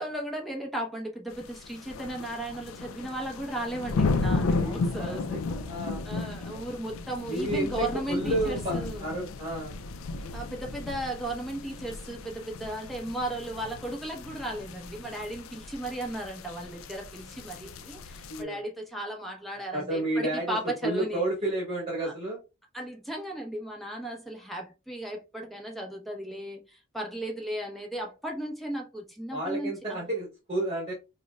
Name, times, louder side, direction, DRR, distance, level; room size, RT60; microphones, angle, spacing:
voice 1, 0.0-5.7 6.0-9.1 10.2-21.3 22.0-22.1 22.7-30.1, right 1 dB, ahead, 0.8 m, -36 dB
sound 1, 1.3-18.4, left 3 dB, 75° left, 0.4 m, -34 dB
voice 2, 4.5-5.2 5.6-6.0 6.5-6.6 7.2-9.7 18.3-18.6 19.7-20.6 20.8-22.4 29.3-30.9, right 1 dB, 30° right, 1.3 m, -31 dB
5.1 x 2.2 x 2.2 m
head